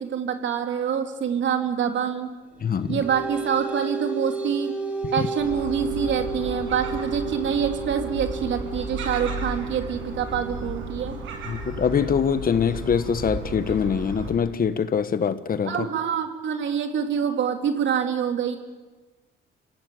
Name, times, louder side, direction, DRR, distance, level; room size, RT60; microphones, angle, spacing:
voice 1, 0.0-2.3 2.9-4.7 5.1-11.2 15.6-18.6, right 8 dB, 70° right, 5 dB, 3.1 m, -26 dB
sound 1, 2.5-13.5, right 3 dB, 5° right, 6.6 m, -34 dB
voice 2, 2.6-3.0 11.5-15.8, left 7 dB, 45° left, 12 dB, 1.4 m, -24 dB
Gull seagull, 5.4-14.3, right 2 dB, 90° right, 6.8 m, -34 dB
26.0 x 17.0 x 9.3 m, 1.3 s
cardioid pair, 90°, 20 cm